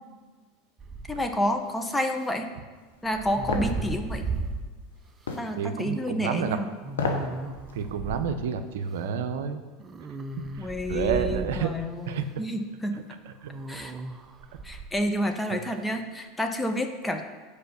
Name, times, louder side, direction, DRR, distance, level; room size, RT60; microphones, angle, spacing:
sound 1, 0.8-1.3 3.0-4.7 5.3-5.4 6.8-8.3 9.8-11.7 13.5-14.9, right 3 dB, 25° right, 0.6 m, -35 dB
voice 1, 1.1-2.5 3.0-4.3 5.4-6.7 10.6-13.1 13.7-13.9 14.6-17.2, equal, 10° left, 5 dB, 0.9 m, -29 dB
sound 2, 3.5-3.7 5.3-5.5 6.9-7.3 7.7-7.8, left 4 dB, 90° left, 1.0 m, -28 dB
voice 2, 5.6-6.6 7.7-9.6 10.3-12.3 13.3-13.5 15.5-15.6, right 7 dB, 75° right, 9 dB, 0.6 m, -30 dB
6.7 x 5.1 x 6.7 m, 1.4 s
hypercardioid pair, 90°, 0 cm